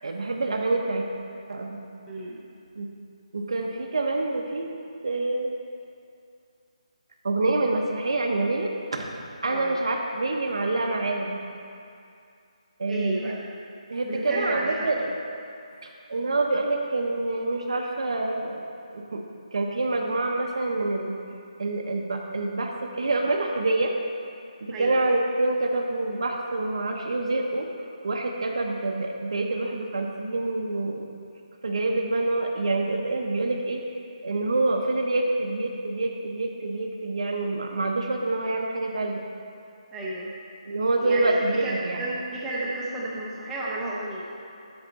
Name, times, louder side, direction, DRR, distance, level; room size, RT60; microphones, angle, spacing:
voice 1, 0.0-1.1 1.5-1.8 2.8-2.9 3.3-4.7 5.0-5.5 7.2-9.1 9.4-11.4 12.8-13.4 13.9-15.1 16.1-18.6 18.9-19.2 19.5-21.1 21.6-23.9 24.6-27.7 28.0-31.1 31.6-33.8 34.2-39.2 40.6-42.0, right 2 dB, 55° right, 1 dB, 0.7 m, -26 dB
voice 2, 2.1-2.4 9.5-9.8 12.9-13.4 14.0-14.9 24.7-25.0 39.9-40.3 41.0-44.3, right 2 dB, 5° right, -7 dB, 0.5 m, -32 dB
8.0 x 6.3 x 4.0 m, 2.5 s
hypercardioid pair, 175°, 4 cm